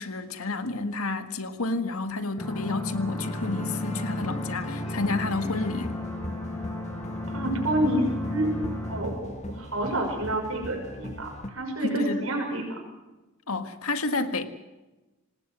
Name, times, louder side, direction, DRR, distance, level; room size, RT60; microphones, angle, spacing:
voice 1, 0.0-6.0 11.8-12.3 13.5-14.5, left 3 dB, 85° left, 9 dB, 1.8 m, -30 dB
sound 1, 2.4-9.0, left 1 dB, 15° left, 7.3 m, -33 dB
sound 2, 3.2-11.5, left 1 dB, 35° left, 1.9 m, -39 dB
voice 2, 7.3-8.6 8.9-12.8, right 1 dB, 80° right, 1 dB, 5.9 m, -29 dB
26.0 x 19.5 x 6.2 m, 1.1 s
head